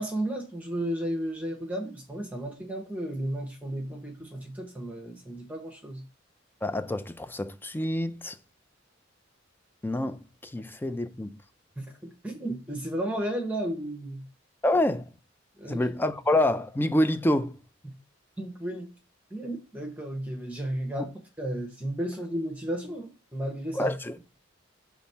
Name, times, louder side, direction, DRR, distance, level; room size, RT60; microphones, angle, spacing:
voice 1, 0.0-6.0 11.8-14.2 15.6-15.8 18.4-18.9 19.3-21.1 21.4-23.9, right 1 dB, 10° right, 1.0 m, -33 dB
voice 2, 6.6-8.4 9.8-11.4 14.6-15.0 15.6-17.6 23.7-24.2, left 1 dB, 10° left, 0.4 m, -27 dB
6.1 x 3.5 x 5.5 m
head